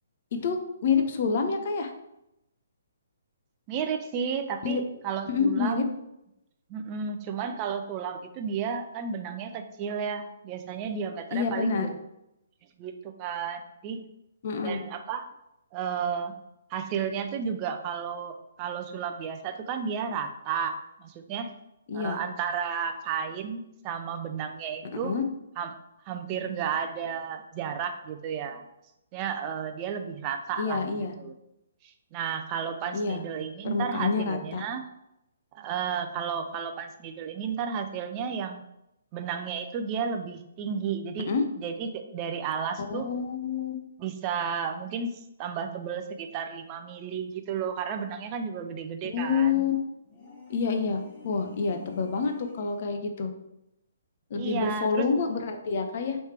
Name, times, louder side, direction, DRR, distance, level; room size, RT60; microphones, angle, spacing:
voice 1, 0.3-1.9 4.6-4.8 5.3-5.8 11.3-11.9 14.4-14.8 21.9-22.2 25.0-25.2 30.6-31.2 32.9-33.2 33.6-34.6 41.3-41.4 42.8-43.8 49.0-49.8 50.5-53.3 54.3-56.2, left 5 dB, 50° left, 5 dB, 0.6 m, -27 dB
voice 2, 3.7-5.9 6.7-12.0 12.8-14.1 14.6-15.3 15.7-16.4 16.7-21.5 21.9-25.1 25.6-25.8 26.0-28.7 29.1-31.3 31.8-34.8 35.5-38.6 39.1-41.3 41.6-43.1 44.0-49.6 54.4-55.1, right 7 dB, 30° right, 6 dB, 0.4 m, -33 dB
sound 1, 50.0-53.0, left 3 dB, 35° left, 1.5 m, -49 dB
3.2 x 3.2 x 4.3 m, 0.85 s
figure-of-eight pair, 135°, 0 cm